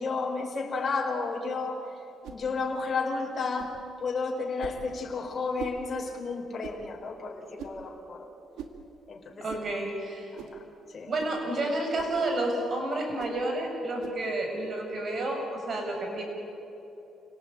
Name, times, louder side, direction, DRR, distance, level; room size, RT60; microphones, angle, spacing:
voice 1, 0.0-1.8 2.3-8.3 9.1-9.5 10.3-10.6 10.9-11.1, left 4 dB, 40° left, 0 dB, 4.4 m, -32 dB
sound 1, 2.2-2.4 3.6-3.8 4.6-4.8 5.6-5.8 6.6-6.8 7.6-7.8 8.6-8.8 9.5-9.7 10.4-10.6 11.2-11.4 11.9-12.2 13.2-13.4 14.0-14.2, right 7 dB, 85° right, 2.2 m, -42 dB
voice 2, 9.4-10.3 11.1-16.2, right 2 dB, 50° right, 2 dB, 7.2 m, -30 dB
28.5 x 18.5 x 8.8 m, 3.0 s
cardioid pair, 90°, 0 cm